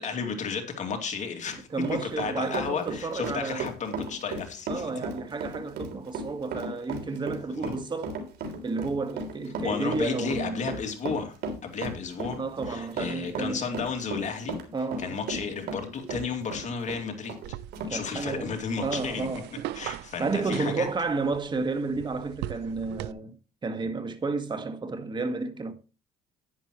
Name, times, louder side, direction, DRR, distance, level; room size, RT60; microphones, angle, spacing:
voice 1, 0.0-4.9 7.5-7.7 9.6-11.4 11.6-12.4 12.7-14.6 15.0-17.4 17.9-19.3 19.7-20.9, left 5 dB, 45° left, 2.5 m, -33 dB
Run, 1.3-17.9 18.3-18.4 18.9-19.1, right 3 dB, 70° right, 3.4 m, -36 dB
voice 2, 1.7-3.7 4.7-8.1 8.6-10.6 12.4-13.7 14.7-15.4 17.9-19.5 20.2-23.4 23.6-25.7, right 3 dB, 25° right, 1.6 m, -31 dB
sound 1, 17.4-23.1, right 14 dB, 85° right, 0.5 m, -40 dB
11.0 x 10.5 x 3.1 m
cardioid pair, 110°, 17 cm